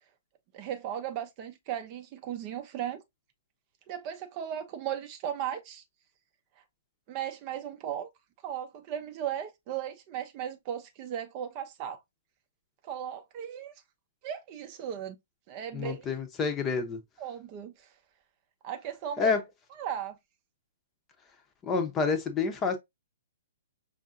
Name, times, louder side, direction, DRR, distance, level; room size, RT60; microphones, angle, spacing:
voice 1, 0.5-3.0 3.9-5.8 7.1-8.1 8.4-12.0 12.8-13.7 14.2-15.2 15.5-16.1 17.2-17.9 18.6-19.3 19.8-20.2, right 10 dB, 35° right, 0.6 m, -36 dB
voice 2, 15.7-17.0 19.2-19.4 21.6-22.8, left 5 dB, 20° left, 0.8 m, -28 dB
5.4 x 2.6 x 2.5 m
figure-of-eight pair, 120°, 0 cm